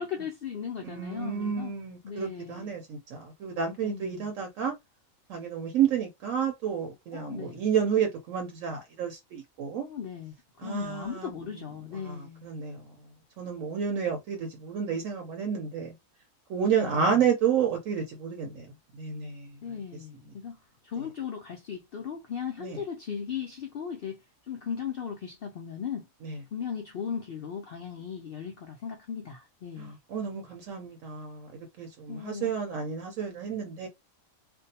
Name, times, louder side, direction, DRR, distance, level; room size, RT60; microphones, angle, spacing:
voice 1, 0.0-1.7 2.0-2.7 3.8-4.3 7.1-7.6 9.8-12.5 16.8-17.2 19.6-20.6 20.8-26.1 26.5-30.0 32.1-32.6, left 7 dB, 75° left, 0.5 m, -37 dB
voice 2, 0.8-4.7 5.3-9.9 10.6-11.3 12.1-12.8 13.4-15.9 16.5-18.7 18.9-19.6 22.6-22.8 26.2-26.4 29.8-33.9, right 7 dB, 70° right, 0.9 m, -30 dB
2.5 x 2.2 x 2.7 m
omnidirectional pair, 1.5 m